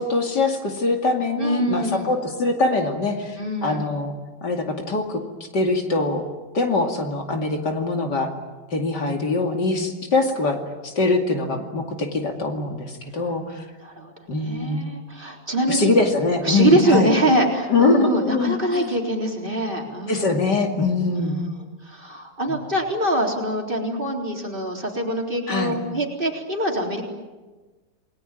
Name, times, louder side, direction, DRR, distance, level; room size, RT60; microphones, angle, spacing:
voice 1, 0.0-4.1 4.4-5.2 5.5-6.3 6.5-8.3 8.7-13.7 14.3-14.8 15.7-17.1 17.7-18.9 20.1-21.4 25.5-25.8, left 3 dB, 65° left, 4 dB, 3.1 m, -23 dB
voice 2, 1.4-2.1 3.4-3.9 13.8-15.9 16.4-20.3 21.1-21.5 21.8-27.0, right 1 dB, 25° right, 1 dB, 4.1 m, -24 dB
29.0 x 20.5 x 9.2 m, 1.3 s
omnidirectional pair, 2.0 m